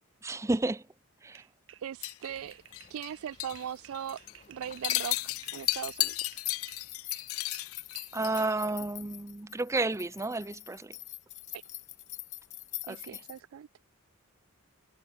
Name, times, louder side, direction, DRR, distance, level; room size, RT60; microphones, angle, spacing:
voice 1, 0.2-0.8 1.2-1.4 8.1-11.0 12.9-13.2, right 2 dB, 15° right, 0.4 m, -31 dB
sound 1, 1.3-6.9 7.1-8.7, right 11 dB, 65° right, 2.1 m, -55 dB
voice 2, 1.8-2.6 2.9-4.2 4.5-6.4 11.5-11.6 12.9-13.7, right 9 dB, 85° right, 0.3 m, -39 dB
sound 2, 2.0-3.1 3.4-3.6 3.9-4.3 4.6-8.5, left 17 dB, 85° left, 0.6 m, -33 dB
sound 3, 2.3-13.4, left 15 dB, 35° left, 0.6 m, -46 dB
head